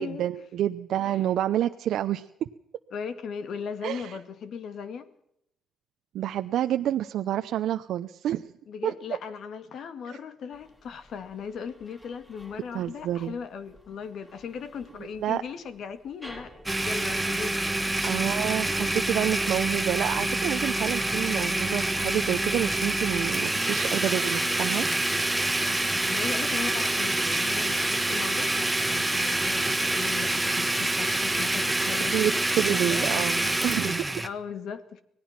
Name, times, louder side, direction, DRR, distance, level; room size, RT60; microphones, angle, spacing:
voice 1, 0.0-2.5 3.8-4.2 6.1-8.5 8.8-8.9 10.1-10.2 12.7-13.3 15.2-15.4 18.0-24.9 32.1-34.1, right 11 dB, 80° right, 8 dB, 0.7 m, -28 dB
voice 2, 2.9-5.1 8.7-17.6 25.6-32.3 32.7-33.3 34.2-35.0, left 6 dB, 65° left, 11 dB, 2.1 m, -38 dB
sound 1, 10.5-23.9, equal, 15° left, 5.1 m, -53 dB
Domestic sounds home sounds, 16.7-34.3, right 1 dB, 10° right, 1.6 m, -26 dB
25.0 x 18.5 x 5.9 m, 0.75 s
cardioid pair, 90°, 0 cm